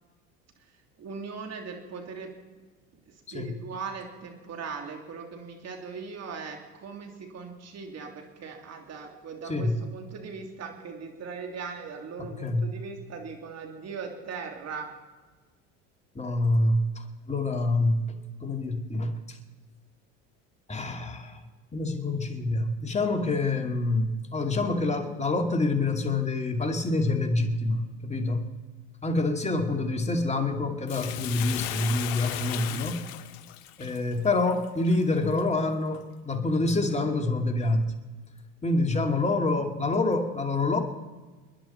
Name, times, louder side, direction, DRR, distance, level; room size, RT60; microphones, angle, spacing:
voice 1, 1.0-2.3 3.1-14.9, right 5 dB, 45° right, 3 dB, 3.3 m, -39 dB
voice 2, 12.3-12.6 16.1-18.0 18.4-19.4 20.7-21.4 21.7-28.5 29.0-33.0 33.8-37.8 38.6-40.8, left 2 dB, 20° left, 3 dB, 2.5 m, -26 dB
Bathtub (filling or washing), 30.9-35.4 35.9-36.0, left 13 dB, 75° left, 1.1 m, -36 dB
28.0 x 10.5 x 4.4 m, 1.3 s
supercardioid pair, 90°, 37 cm